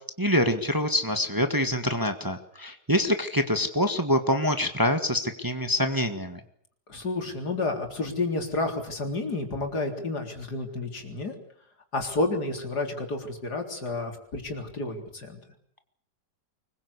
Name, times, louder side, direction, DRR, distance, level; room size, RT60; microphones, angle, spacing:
voice 1, 0.2-6.4, left 1 dB, 15° right, 7 dB, 1.6 m, -25 dB
voice 2, 6.9-11.3 11.9-15.4, left 2 dB, 75° left, 3 dB, 4.3 m, -30 dB
24.5 x 21.5 x 8.2 m, 0.65 s
omnidirectional pair, 1.7 m